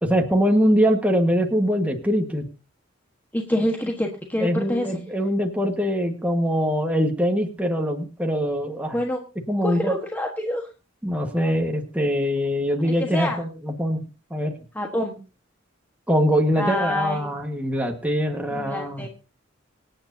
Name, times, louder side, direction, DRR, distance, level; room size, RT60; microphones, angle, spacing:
voice 1, 0.0-2.5 4.4-9.0 9.5-9.9 11.0-14.0 14.3-14.5 16.1-19.0, equal, 5° right, 2 dB, 1.5 m, -23 dB
voice 2, 3.3-5.0 8.9-9.2 9.6-10.7 11.3-11.5 12.8-13.4 14.7-15.2 16.6-17.3 18.5-19.1, left 1 dB, 10° left, 1 dB, 1.3 m, -27 dB
25.5 x 8.8 x 2.7 m, 0.32 s
head